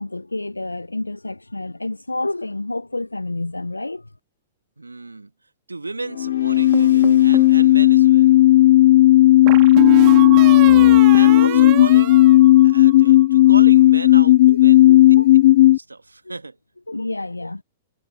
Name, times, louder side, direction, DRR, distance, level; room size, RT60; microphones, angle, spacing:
voice 1, 0.0-4.1 11.2-11.9 14.5-14.6 14.8-15.3 16.2-16.4 16.9-17.6, left 2 dB, 90° left, 1.0 m, -28 dB
voice 2, 4.8-5.3 5.7-8.4 11.1-12.2 12.6-14.9 15.7-16.6, right 3 dB, 85° right, 2.5 m, -34 dB
sound 1, 5.9-9.2, left 6 dB, 75° left, 2.4 m, -39 dB
sound 2, 6.2-15.8, left 15 dB, 55° left, 0.4 m, -12 dB
sound 3, 6.7-7.6 9.5-13.1, right 40 dB or more, 40° right, 2.7 m, -27 dB
figure-of-eight pair, 105°, 0 cm